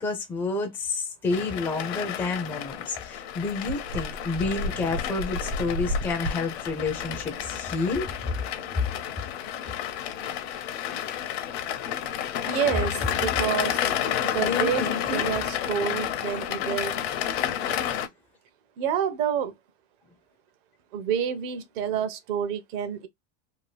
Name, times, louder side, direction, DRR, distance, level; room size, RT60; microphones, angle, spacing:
voice 1, 0.0-8.4 8.8-8.9 14.4-15.2, left 3 dB, 5° left, 0.4 m, -29 dB
sound 1, 1.3-18.1, left 10 dB, 65° left, 0.7 m, -31 dB
sound 2, 3.7-8.9, left 1 dB, 70° right, 1.2 m, -34 dB
voice 2, 12.5-13.8 14.2-17.0 18.8-19.5 20.9-23.1, right 8 dB, 45° right, 0.7 m, -28 dB
2.7 x 2.4 x 3.1 m
supercardioid pair, 160°, 34 cm